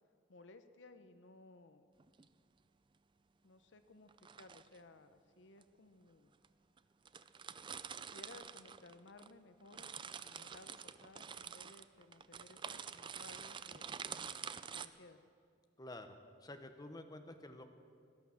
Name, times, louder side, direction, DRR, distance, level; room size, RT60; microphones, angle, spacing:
voice 1, 0.3-1.9 3.4-4.1 4.4-6.3 8.0-14.2 14.7-15.2, left 2 dB, 70° left, 10 dB, 0.8 m, -59 dB
sound 1, 2.0-2.3 4.1-4.8 5.6-5.7 6.4-6.5 6.8-6.9 7.1-9.3 9.6-14.9, right 7 dB, 25° right, 0.4 m, -47 dB
voice 2, 15.8-17.7, left 1 dB, 20° left, 6 dB, 0.9 m, -50 dB
18.0 x 11.0 x 7.1 m, 2.2 s
head